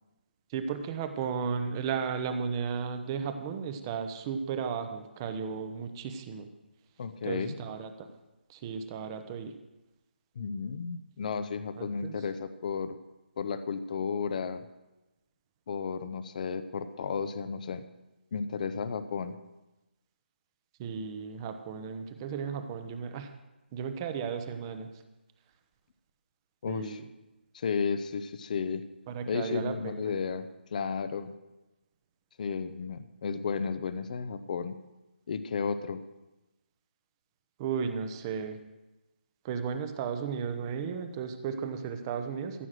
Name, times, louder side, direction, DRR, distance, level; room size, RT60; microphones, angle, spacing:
voice 1, 0.5-6.5 7.2-8.1 8.5-9.5 11.8-12.2 20.8-23.3 23.7-24.9 26.7-27.0 29.1-30.1 37.6-38.6 39.4-42.7, right 6 dB, 20° right, 8 dB, 0.9 m, -34 dB
voice 2, 7.0-7.6 10.4-13.0 13.4-14.7 15.7-17.9 18.3-19.4 26.6-27.0 27.5-28.8 29.3-31.3 32.4-34.8 35.3-36.0, left 5 dB, 45° left, 12 dB, 0.7 m, -33 dB
14.5 x 6.2 x 7.6 m, 1.0 s
figure-of-eight pair, 160°, 6 cm